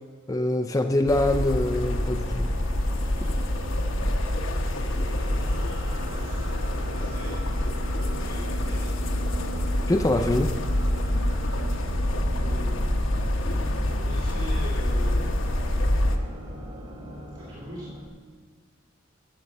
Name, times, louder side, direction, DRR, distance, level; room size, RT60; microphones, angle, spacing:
voice 1, 0.3-2.5 9.9-10.5, left 1 dB, 15° left, 6 dB, 0.4 m, -24 dB
sound 1, 0.8-18.1, right 1 dB, 35° right, 1.9 m, -40 dB
sound 2, 1.1-16.2, left 1 dB, 75° left, 1.0 m, -26 dB
voice 2, 4.6-9.6 12.4-13.1 13.9-16.1 17.3-17.9, left 1 dB, 60° right, -9 dB, 2.5 m, -44 dB
12.0 x 6.4 x 6.7 m, 1.5 s
head